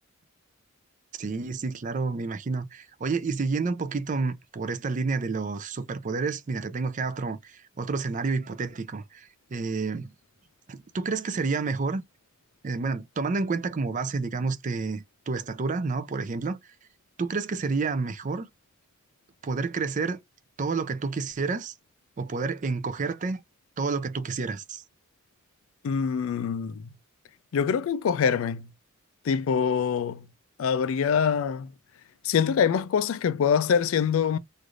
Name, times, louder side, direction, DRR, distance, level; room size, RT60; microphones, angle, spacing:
voice 1, 1.2-10.1 10.7-12.0 12.6-16.6 17.2-18.5 19.4-20.2 20.6-21.7 22.2-23.4 23.8-24.8, right 4 dB, 35° right, 0.4 m, -29 dB
voice 2, 25.8-26.9 27.5-28.7 29.3-30.2 30.6-31.7 32.2-34.4, left 7 dB, 65° left, 0.3 m, -24 dB
3.2 x 2.5 x 2.4 m
head